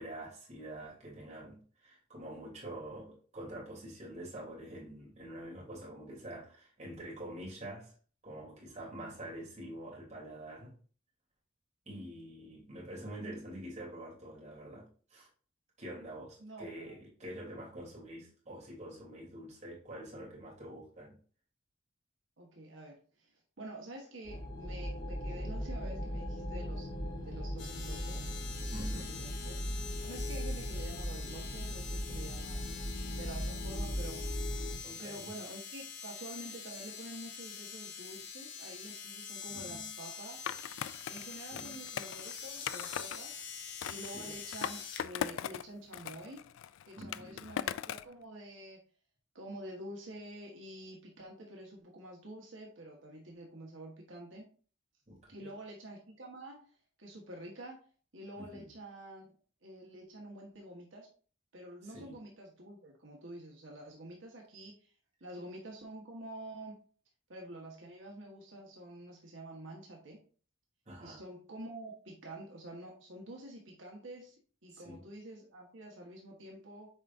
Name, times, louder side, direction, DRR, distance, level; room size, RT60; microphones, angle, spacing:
voice 1, 0.0-7.9 8.2-10.7 11.9-15.3 15.8-21.2 28.7-29.2 34.8-35.2 39.5-39.9 41.5-41.7 44.1-44.4 46.9-47.5 55.1-55.5 58.4-58.7 61.8-62.2 70.9-71.2 74.7-75.0, right 1 dB, 35° right, -5 dB, 3.4 m, -46 dB
voice 2, 16.4-16.9 22.4-23.3 23.6-26.9 27.2-28.4 28.8-29.6 30.0-32.7 33.2-34.2 35.0-40.4 40.8-43.4 43.9-46.4 46.9-48.8 49.3-54.4 55.3-56.7 57.0-57.8 58.1-59.3 59.6-61.1 61.5-64.9 65.2-66.8 67.3-70.2 71.0-74.3 74.6-76.9, right 1 dB, 80° right, -1 dB, 1.6 m, -48 dB
sound 1, 24.2-34.8, equal, 30° left, 3.3 m, -38 dB
sound 2, 27.6-45.0 46.0-46.1, left 6 dB, 65° left, 1.2 m, -45 dB
Skateboard, 40.5-43.2 43.8-45.7 45.9-48.1, left 9 dB, 85° left, 0.3 m, -39 dB
7.2 x 5.0 x 2.7 m, 0.41 s
head